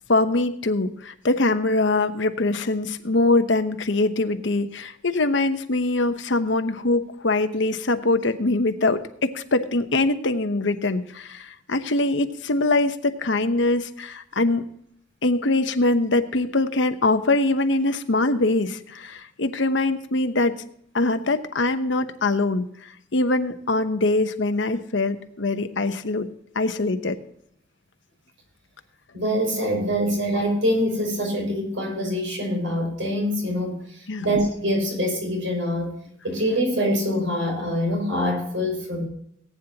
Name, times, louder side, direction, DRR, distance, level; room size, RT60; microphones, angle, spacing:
voice 1, 0.1-14.6 15.2-20.6 20.9-22.7 23.1-26.3 26.5-27.2 34.1-34.2, left 2 dB, 65° left, 9 dB, 1.0 m, -23 dB
voice 2, 29.1-35.9 36.2-39.1, equal, 75° right, 1 dB, 5.7 m, -25 dB
19.0 x 9.4 x 2.9 m, 0.68 s
head